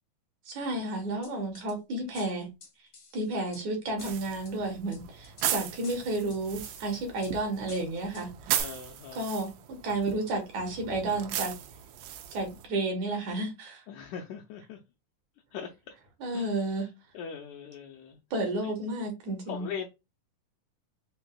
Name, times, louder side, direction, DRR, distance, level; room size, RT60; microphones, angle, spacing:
voice 1, 0.5-2.5 3.1-8.3 9.2-9.5 9.8-11.5 12.3-13.8 16.2-16.9 18.3-19.7, right 2 dB, 65° right, 2.3 m, -31 dB
sound 1, 1.2-1.7 2.1-3.6 4.0-4.5 4.9-5.5 5.8-6.8 7.2-7.3 7.7-8.3 8.6-8.7, left 3 dB, 65° left, 0.9 m, -50 dB
sound 2, 4.0-12.7, right 11 dB, 85° right, 2.2 m, -37 dB
voice 2, 8.6-9.3 13.9-14.8 15.5-15.9 16.3-16.5 16.8-16.9 17.1-18.2 18.6-18.7 19.5-19.9, left 7 dB, 80° left, 1.7 m, -40 dB
5.5 x 2.6 x 2.3 m
omnidirectional pair, 3.8 m